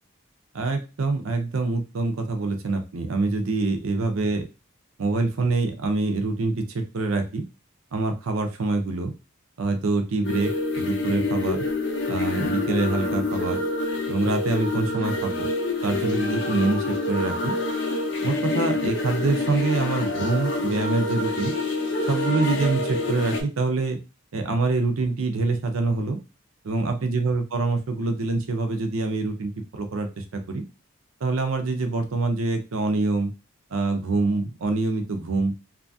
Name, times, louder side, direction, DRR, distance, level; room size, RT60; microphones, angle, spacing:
voice 1, 0.5-4.5 5.0-7.4 7.9-9.1 9.6-11.7 12.1-13.6 14.1-15.5 15.8-17.5 18.2-21.5 22.0-24.0 24.3-26.2 26.6-30.6 31.2-33.3 33.7-35.5, right 3 dB, 85° right, 6 dB, 0.5 m, -25 dB
sound 1, 10.2-23.4, left 2 dB, 55° left, 0.5 m, -27 dB
2.7 x 2.3 x 2.6 m, 0.30 s
head